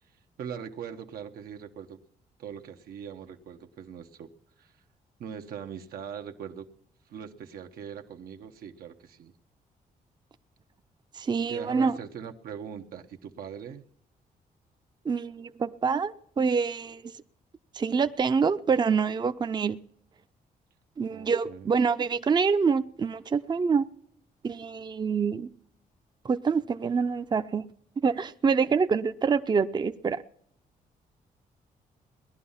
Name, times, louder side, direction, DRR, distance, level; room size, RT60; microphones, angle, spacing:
voice 1, 0.4-2.0 2.4-4.3 4.6-4.7 5.2-6.7 7.1-9.3 11.5-13.8 21.1-21.7, right 8 dB, 85° right, 1.1 m, -41 dB
voice 2, 11.1-12.0 15.1-17.0 17.7-19.8 21.0-23.8 24.4-25.5 26.2-27.6 28.0-30.2, right 5 dB, 30° right, 0.5 m, -26 dB
18.5 x 11.5 x 5.6 m
cardioid pair, 105°, 15 cm